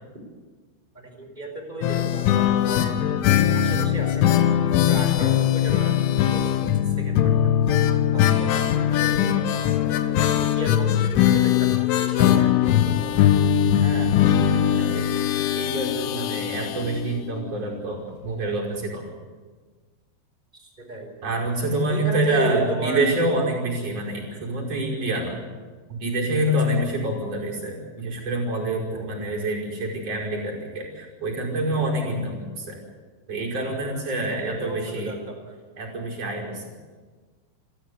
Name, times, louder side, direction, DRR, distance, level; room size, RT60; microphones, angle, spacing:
voice 1, 0.9-4.4 4.9-6.7 7.0-7.3 8.1-11.7 12.0-13.2 20.6-21.1 21.8-23.1 28.9-29.1 34.3-35.6, right 2 dB, 10° right, 2 dB, 4.2 m, -34 dB
sound 1, 1.8-17.5 17.7-17.8 18.1-18.2, left 10 dB, 80° left, 3.5 m, -21 dB
voice 2, 13.8-15.1 15.5-19.1 21.2-25.4 25.9-32.8 33.3-35.1 35.8-36.6, right 1 dB, 30° right, -1 dB, 6.0 m, -27 dB
28.5 x 13.5 x 8.4 m, 1.4 s
omnidirectional pair, 5.7 m